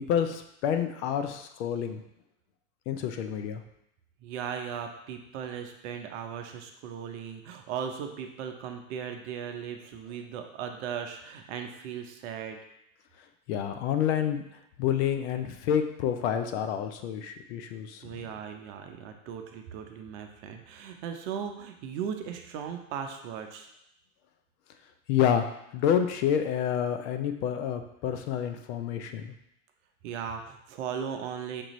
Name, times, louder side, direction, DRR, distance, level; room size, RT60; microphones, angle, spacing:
voice 1, 0.0-2.0 2.9-3.6 13.5-14.4 14.8-18.3 25.1-25.4 25.7-29.3, left 9 dB, 50° left, 8 dB, 0.5 m, -28 dB
voice 2, 4.2-12.6 18.0-23.7 30.0-31.6, right 7 dB, 55° right, 5 dB, 0.7 m, -37 dB
6.1 x 2.5 x 3.0 m, 0.79 s
hypercardioid pair, 120°, 43 cm